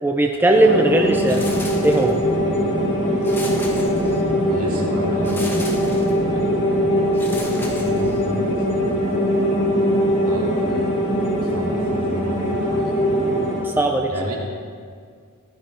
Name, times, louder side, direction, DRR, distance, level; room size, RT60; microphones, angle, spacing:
voice 1, 0.0-1.4 1.8-2.2 13.6-14.3, right 2 dB, 10° right, 2 dB, 0.6 m, -18 dB
sound 1, 0.5-13.6, equal, 30° left, 3.6 m, -21 dB
sound 2, 1.2-2.3 3.2-4.4 5.2-6.3 7.1-8.4, left 1 dB, 10° left, 1.3 m, -35 dB
voice 2, 4.5-6.8 7.6-8.2 8.7-8.9 10.3-10.9 11.5-12.9 14.1-14.3, equal, 70° right, -3 dB, 2.9 m, -32 dB
15.5 x 12.0 x 4.4 m, 2.1 s
head